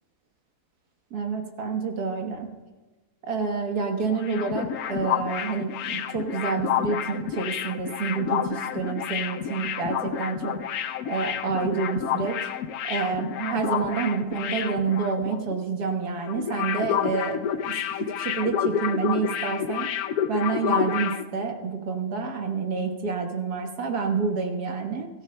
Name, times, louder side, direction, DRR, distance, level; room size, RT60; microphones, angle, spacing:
voice 1, 1.1-2.5 3.2-10.6 11.0-12.4 12.9-17.4 17.6-17.7 18.2-19.9 20.3-25.1, right 5 dB, 60° right, 3 dB, 1.8 m, -28 dB
sound 1, 4.0-15.5 15.8-16.0 16.3-21.2, left 9 dB, 70° left, 1.0 m, -29 dB
23.5 x 13.5 x 2.2 m, 1.2 s
omnidirectional pair, 1.9 m